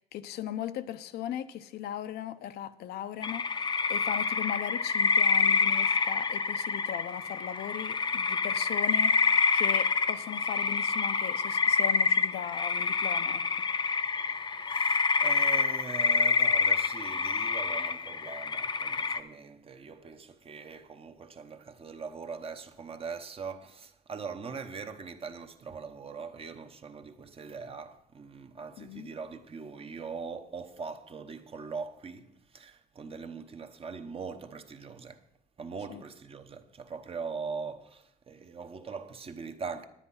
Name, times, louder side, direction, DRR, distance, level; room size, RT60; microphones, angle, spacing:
voice 1, 0.0-13.4 28.8-29.1 35.9-36.0, left 11 dB, 75° left, 0.7 m, -38 dB
sound 1, 3.2-19.2, left 5 dB, 25° left, 0.6 m, -27 dB
voice 2, 14.3-35.2 35.6-39.8, right 5 dB, 35° right, 1.0 m, -41 dB
10.0 x 9.8 x 5.6 m
cardioid pair, 110°, 17 cm